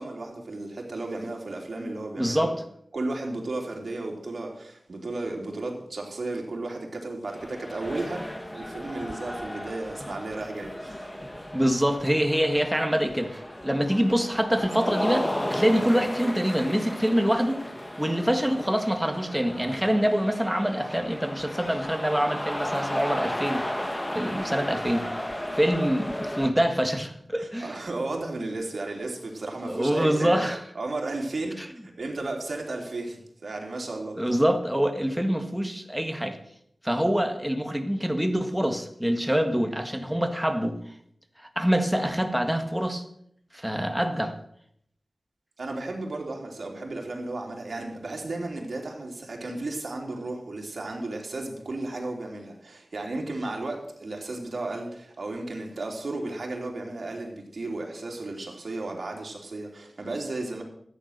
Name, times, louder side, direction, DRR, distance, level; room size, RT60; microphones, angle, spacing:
voice 1, 0.0-2.5 2.9-8.2 8.5-11.1 27.4-30.5 30.7-34.2 45.6-60.6, right 2 dB, 65° right, 0 dB, 3.4 m, -34 dB
voice 2, 2.2-2.6 11.5-17.6 18.0-23.7 24.1-25.1 25.5-27.8 29.7-30.6 31.6-31.7 34.2-36.4 36.8-40.8 41.4-43.0 43.5-44.3, equal, 5° right, 6 dB, 1.8 m, -25 dB
sound 1, 7.3-26.5, left 1 dB, 15° left, 1.7 m, -34 dB
13.5 x 9.6 x 6.7 m, 0.70 s
wide cardioid pair, 75°, 0 cm